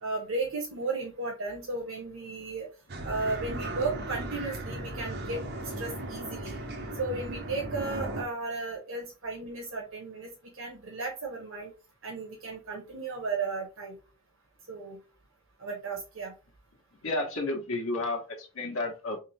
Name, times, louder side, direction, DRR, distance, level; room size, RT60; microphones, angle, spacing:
voice 1, 0.0-2.7 3.0-6.6 7.0-11.7 12.0-14.0 14.7-15.0 15.6-16.3, right 3 dB, 75° right, -1 dB, 1.2 m, -35 dB
sound 1, 2.9-8.2, right 1 dB, 55° right, 1.0 m, -36 dB
voice 2, 17.0-19.2, left 2 dB, 85° left, 1 dB, 1.0 m, -31 dB
3.7 x 3.1 x 3.3 m, 0.32 s
head